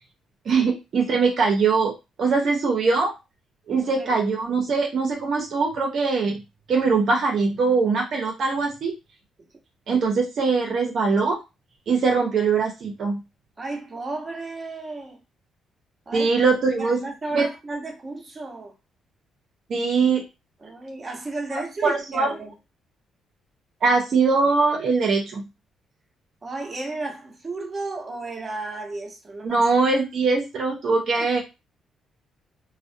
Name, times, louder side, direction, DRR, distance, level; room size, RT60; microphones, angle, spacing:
voice 1, 0.5-1.9 2.2-3.1 3.7-6.4 6.7-8.9 9.9-11.4 11.9-13.2 16.1-17.0 17.3-17.5 19.7-20.2 21.8-22.3 23.8-25.4 29.4-31.4, right 4 dB, 60° right, 0.6 m, -22 dB
voice 2, 3.8-4.2 9.9-10.0 13.6-15.2 16.1-16.3 16.8-18.7 20.6-22.5 26.4-29.6 31.2-31.4, right 2 dB, 30° right, 0.8 m, -33 dB
2.4 x 2.0 x 2.6 m
cardioid pair, 90°, 0 cm